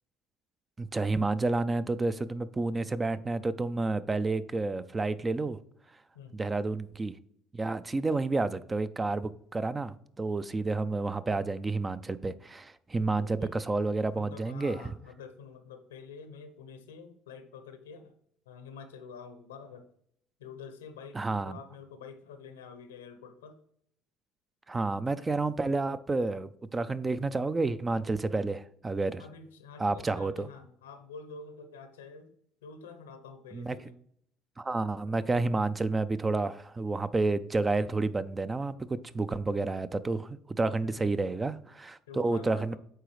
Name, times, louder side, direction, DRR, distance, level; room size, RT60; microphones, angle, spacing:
voice 1, 0.8-5.6 6.3-7.2 7.5-14.8 21.1-21.6 24.7-29.2 29.8-30.5 33.5-33.8 34.6-42.8, right 3 dB, 25° right, 0.4 m, -30 dB
voice 2, 13.2-13.5 14.2-18.2 18.5-19.8 20.4-23.6 29.2-32.3 32.6-34.0 40.8-41.2 42.1-42.8, left 5 dB, 90° left, 0.8 m, -47 dB
9.2 x 3.8 x 3.1 m
hypercardioid pair, 65°, 0 cm